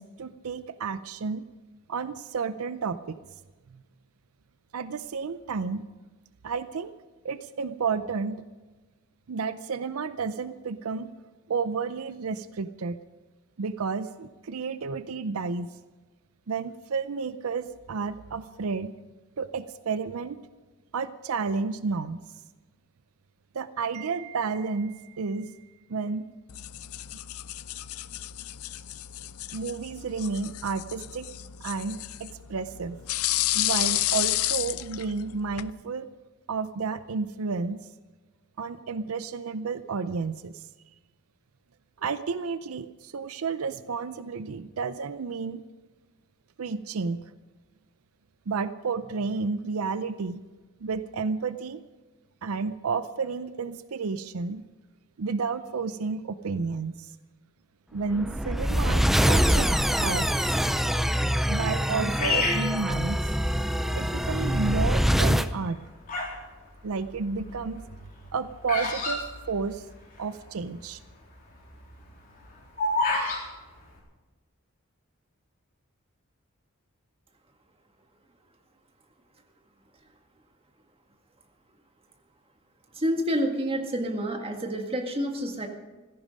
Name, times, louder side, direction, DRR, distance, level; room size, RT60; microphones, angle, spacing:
voice 1, 0.0-1.5 1.9-3.2 4.7-5.8 6.4-6.9 7.2-8.4 9.3-11.1 11.5-13.0 13.6-15.7 16.5-18.9 19.4-20.4 20.9-22.2 23.5-25.6 25.9-26.3 29.5-31.3 31.6-33.0 33.5-36.1 36.5-37.8 38.6-40.6 42.0-45.6 46.6-47.3 48.5-50.4 50.8-51.8 52.4-54.6 55.2-57.1 57.9-60.9 61.5-63.2 63.9-65.8 66.8-67.8 68.3-69.2 69.5-69.9 70.2-71.0, right 5 dB, 85° right, 13 dB, 0.5 m, -31 dB
sound 1, 26.5-35.7, left 15 dB, 90° left, 0.5 m, -32 dB
sound 2, 58.1-65.5, equal, ahead, 0.4 m, -24 dB
Bird vocalization bird call bird song, 62.2-63.7 64.3-64.8 65.5-66.4 66.7-70.2 70.5-70.6 70.7-71.1 71.5-73.4, left 3 dB, 40° left, 3.6 m, -29 dB
voice 2, 82.9-85.7, equal, 25° right, 3 dB, 1.8 m, -28 dB
16.0 x 14.5 x 5.3 m, 1.2 s
head